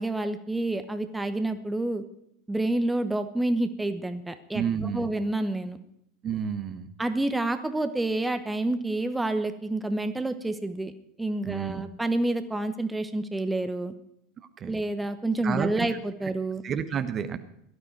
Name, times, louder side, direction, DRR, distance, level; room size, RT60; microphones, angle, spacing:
voice 1, 0.0-2.0 2.5-5.8 7.0-10.9 11.2-13.9 14.7-16.6, right 2 dB, 10° right, 9 dB, 1.1 m, -28 dB
voice 2, 4.5-5.1 6.2-6.9 11.4-11.8 14.6-14.8 15.4-16.0 16.6-17.4, right 8 dB, 35° right, 10 dB, 1.1 m, -30 dB
17.0 x 12.5 x 4.7 m, 0.75 s
figure-of-eight pair, 80°, 0 cm